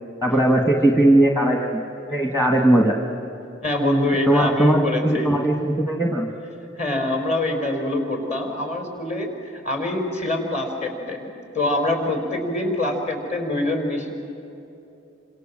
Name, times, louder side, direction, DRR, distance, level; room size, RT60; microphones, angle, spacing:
voice 1, 0.2-1.8 2.1-3.0 4.3-6.3, right 1 dB, 15° left, 1 dB, 1.9 m, -18 dB
voice 2, 3.6-5.3 6.6-11.3 11.5-14.1, left 1 dB, 35° left, 3 dB, 5.1 m, -25 dB
29.0 x 26.5 x 7.7 m, 2.9 s
head